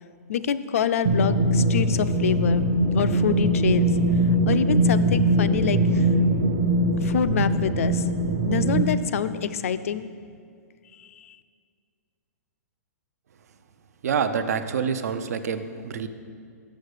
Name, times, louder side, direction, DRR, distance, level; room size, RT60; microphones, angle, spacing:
voice 1, 0.3-2.6 2.9-3.9 4.5-6.1 7.0-8.0 8.4-10.1 11.2-11.4, left 8 dB, 55° left, 13 dB, 0.4 m, -26 dB
sound 1, 1.0-8.8, right 1 dB, 30° right, 0.7 m, -21 dB
voice 2, 14.0-16.1, right 6 dB, 65° right, 10 dB, 0.6 m, -27 dB
6.5 x 6.3 x 6.6 m, 2.2 s
hypercardioid pair, 175°, 9 cm